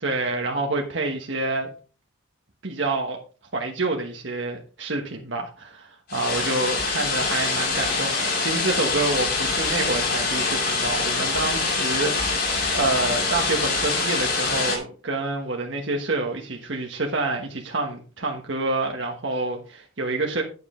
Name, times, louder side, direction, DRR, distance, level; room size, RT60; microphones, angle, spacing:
voice 1, 0.0-1.7 2.6-3.2 3.5-12.5 12.7-20.4, right 2 dB, 70° right, 1.3 m, -27 dB
sound 1, 6.1-14.8, left 3 dB, 50° left, 4.6 m, -24 dB
9.5 x 7.7 x 3.7 m
head